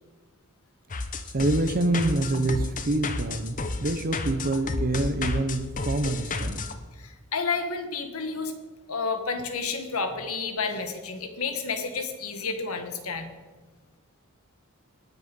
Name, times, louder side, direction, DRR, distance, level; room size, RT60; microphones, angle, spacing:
sound 1, 0.9-6.7, left 3 dB, 35° left, 0.8 m, -31 dB
voice 1, 1.3-6.6, right 2 dB, 40° right, 11 dB, 0.8 m, -26 dB
voice 2, 7.0-8.5 8.9-13.3, left 4 dB, 75° left, 7 dB, 1.5 m, -30 dB
19.0 x 6.6 x 5.3 m, 1.3 s
head